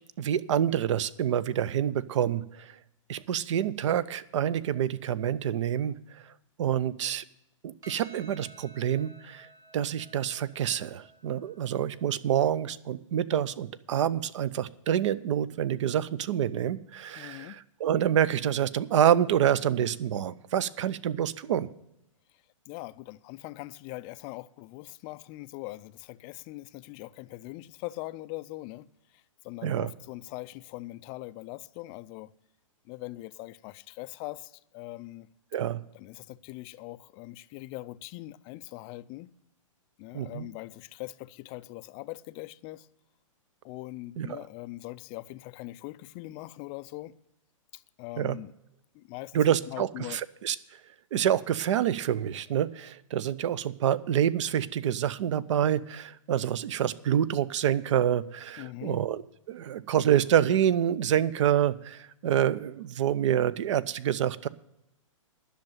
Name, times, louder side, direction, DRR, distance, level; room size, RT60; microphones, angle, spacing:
voice 1, 0.2-2.7 3.1-6.2 6.6-7.2 7.6-9.5 9.7-21.7 29.6-29.9 35.5-35.8 40.1-40.5 44.2-44.4 48.2-48.4 49.3-50.6 51.1-59.2 59.5-64.5, right 10 dB, 60° right, 0.6 m, -27 dB
Percussion, 7.8-12.5, right 2 dB, 20° right, 0.9 m, -54 dB
voice 2, 17.2-17.6 22.7-28.9 29.4-32.3 32.9-35.3 35.9-39.3 40.0-42.9 43.6-47.1 47.7-48.5 48.9-49.4 49.7-50.2 58.6-59.0, left 19 dB, 25° left, 0.3 m, -41 dB
10.5 x 6.5 x 9.1 m
hypercardioid pair, 135°, 17 cm